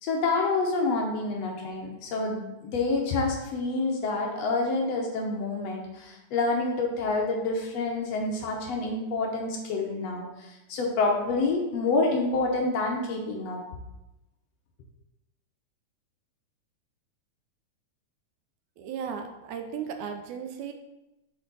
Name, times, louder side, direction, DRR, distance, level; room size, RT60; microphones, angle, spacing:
voice 1, 0.0-13.6, left 3 dB, 65° left, 0 dB, 1.9 m, -28 dB
voice 2, 18.8-20.7, right 7 dB, 80° right, 6 dB, 2.0 m, -35 dB
7.0 x 4.4 x 4.0 m, 0.95 s
omnidirectional pair, 3.4 m